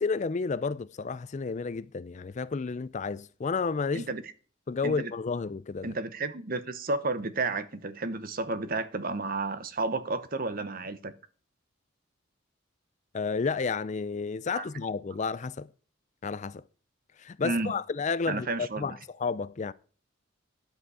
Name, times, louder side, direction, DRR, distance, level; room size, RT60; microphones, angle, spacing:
voice 1, 0.0-4.1 4.7-5.9 13.1-15.7 16.2-16.6 17.2-19.7, left 4 dB, 35° left, 0.4 m, -31 dB
voice 2, 5.8-11.1 14.5-14.7 17.4-17.7 18.3-18.9, right 3 dB, 45° right, 0.9 m, -32 dB
11.0 x 8.0 x 4.9 m
head